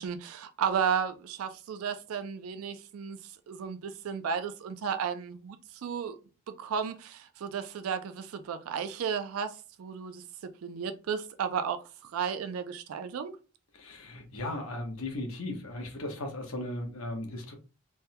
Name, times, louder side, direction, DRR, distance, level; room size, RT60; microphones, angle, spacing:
voice 1, 0.0-5.6 5.8-6.2 6.6-10.2 10.6-11.8 12.1-13.3, right 7 dB, 85° right, 0.3 m, -33 dB
voice 2, 13.7-17.5, left 1 dB, 80° left, 1.0 m, -37 dB
3.4 x 2.1 x 2.7 m
head